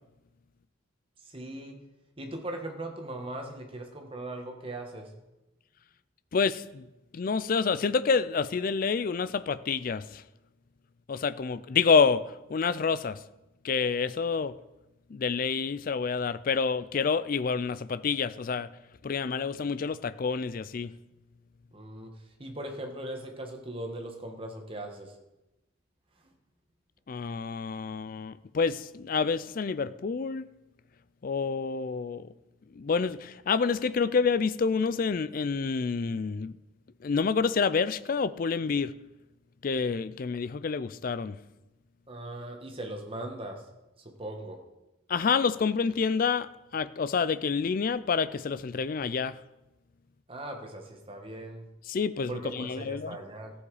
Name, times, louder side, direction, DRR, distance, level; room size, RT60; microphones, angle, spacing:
voice 1, 1.3-1.8 2.2-5.1 21.7-22.1 22.4-25.1 42.1-43.6 44.2-44.6 50.3-51.6 52.3-53.5, right 1 dB, 25° right, 1.5 m, -39 dB
voice 2, 6.3-6.9 7.1-10.2 11.1-13.2 13.6-14.5 15.1-18.7 19.0-20.9 27.1-30.5 31.2-32.3 32.8-36.5 37.0-38.9 39.6-41.4 45.1-49.4 51.9-53.2, left 5 dB, 45° left, 0.4 m, -28 dB
14.5 x 7.2 x 4.9 m
head